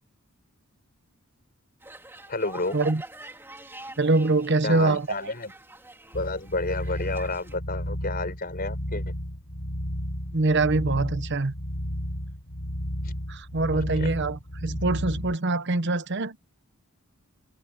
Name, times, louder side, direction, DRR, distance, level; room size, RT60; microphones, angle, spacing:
sound 1, 1.8-7.6, right 2 dB, 10° right, 3.0 m, -45 dB
voice 1, 2.3-2.8 4.6-5.5 6.1-9.0 14.0-14.1, left 2 dB, 45° left, 5.7 m, -30 dB
voice 2, 4.0-5.3 10.3-11.5 13.3-16.4, right 3 dB, 55° right, 1.0 m, -24 dB
sound 2, 6.1-15.4, equal, 75° left, 3.7 m, -33 dB
head